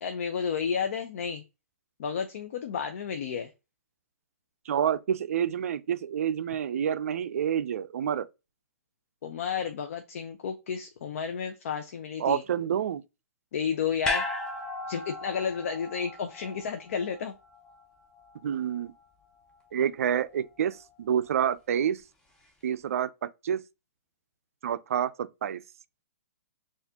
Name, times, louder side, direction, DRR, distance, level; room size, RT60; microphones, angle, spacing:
voice 1, 0.0-1.4 2.0-3.5 9.2-12.4 13.5-14.2 14.9-17.3, left 7 dB, 55° left, 0.6 m, -32 dB
voice 2, 4.7-8.3 12.2-13.0 18.4-18.9 19.7-22.0 22.6-23.6 24.6-25.6, right 9 dB, 65° right, 0.4 m, -28 dB
sound 1, 14.0-18.4 18.7-18.8, left 3 dB, 10° left, 0.7 m, -36 dB
4.1 x 2.5 x 2.7 m
hypercardioid pair, 145°, 8 cm